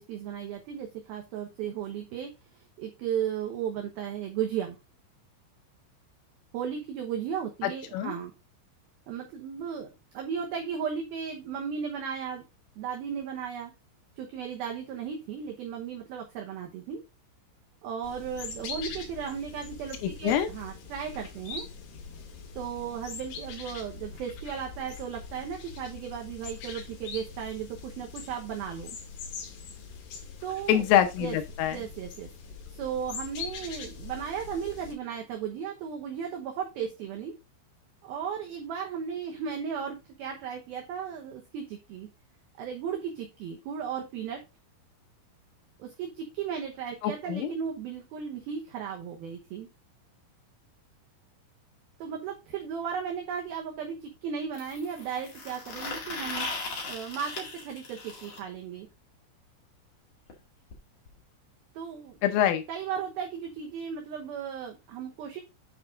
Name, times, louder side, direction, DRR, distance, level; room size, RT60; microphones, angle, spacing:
voice 1, 0.0-4.8 6.5-8.3 9.1-9.9 10.1-12.4 12.8-13.7 14.2-17.0 17.8-21.7 22.6-29.0 30.4-30.9 31.2-31.4 31.7-32.3 32.7-37.4 38.0-42.1 42.6-44.4 45.8-49.7 52.0-56.5 56.9-58.9 61.7-62.2 62.7-65.4, right 7 dB, 75° right, 1 dB, 2.3 m, -35 dB
voice 2, 7.6-8.1 20.0-20.5 30.7-31.8 47.0-47.5 62.2-62.6, left 10 dB, 85° left, 7 dB, 3.4 m, -25 dB
sound 1, 18.0-34.9, left 5 dB, 60° left, 3.5 m, -42 dB
sound 2, 52.5-52.6 54.5-58.4 60.3-60.4 60.7-60.8 61.1-61.2 62.1-62.2, left 3 dB, 45° left, 2.4 m, -38 dB
9.4 x 4.8 x 3.6 m, 0.25 s
omnidirectional pair, 5.7 m